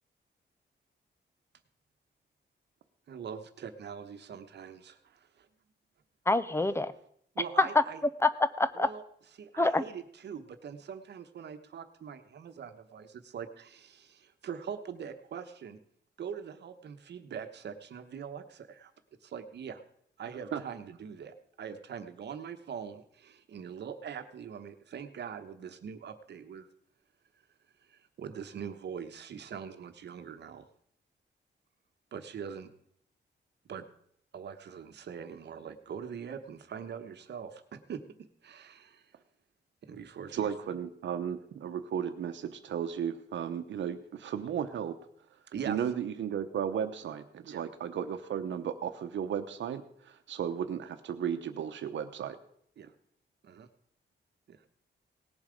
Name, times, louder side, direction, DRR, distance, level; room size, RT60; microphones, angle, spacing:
voice 1, 3.1-5.5 7.3-8.0 8.7-9.0 9.4-15.8 16.2-18.9 19.2-19.8 20.2-26.7 27.9-30.7 32.1-32.7 33.7-33.8 34.3-38.0 38.4-39.1 39.8-40.5 45.5-45.8 47.4-47.6 52.8-52.9 53.4-53.7 54.5-54.6, right 7 dB, 65° right, 9 dB, 1.1 m, -42 dB
voice 2, 6.3-6.9 7.6-7.7 8.2-8.9 9.6-9.8, left 2 dB, 15° left, 14 dB, 0.5 m, -26 dB
voice 3, 40.3-45.0 45.6-52.4, right 8 dB, 85° right, 9 dB, 0.9 m, -34 dB
18.0 x 7.3 x 5.1 m, 0.67 s
wide cardioid pair, 160°, 19 cm